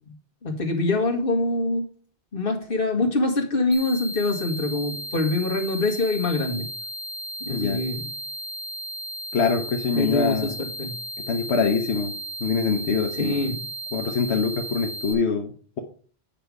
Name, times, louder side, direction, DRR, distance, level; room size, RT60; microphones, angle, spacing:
voice 1, 0.4-1.9 2.3-6.7 7.4-8.1 9.9-10.9 13.2-13.6, left 2 dB, 55° left, 2 dB, 1.9 m, -24 dB
sound 1, 3.7-15.1, right 1 dB, 40° right, 1.2 m, -35 dB
voice 2, 7.5-7.8 9.3-10.6 11.3-13.4 13.9-15.8, left 5 dB, 85° left, 3 dB, 1.1 m, -24 dB
8.9 x 5.3 x 4.8 m, 0.43 s
omnidirectional pair, 1.1 m